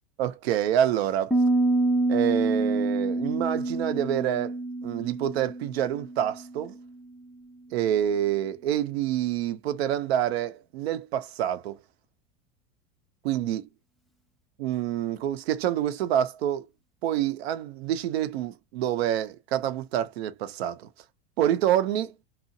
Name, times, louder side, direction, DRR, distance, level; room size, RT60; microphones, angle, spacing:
voice 1, 0.2-1.3 2.1-6.7 7.7-11.8 13.2-13.7 14.6-16.7 17.0-20.9 21.4-22.1, right 11 dB, 85° right, 0.6 m, -27 dB
Piano, 1.3-6.9, right 2 dB, ahead, 0.3 m, -27 dB
2.7 x 2.4 x 2.6 m
supercardioid pair, 120°, 30 cm